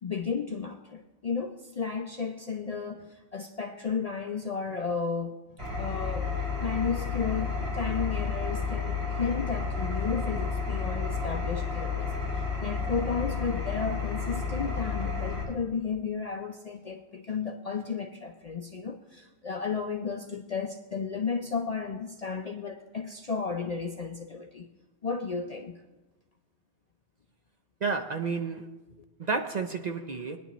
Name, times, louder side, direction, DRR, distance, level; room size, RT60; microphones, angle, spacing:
voice 1, 0.0-6.3 6.6-24.7 25.0-25.7, left 5 dB, 50° left, 5 dB, 0.5 m, -33 dB
Engine, 5.6-15.4, left 5 dB, 65° right, 4.4 m, -31 dB
voice 2, 27.8-28.7 29.2-30.4, right 4 dB, 45° right, 5 dB, 0.6 m, -31 dB
20.5 x 10.0 x 3.0 m, 1.1 s
omnidirectional pair, 1.2 m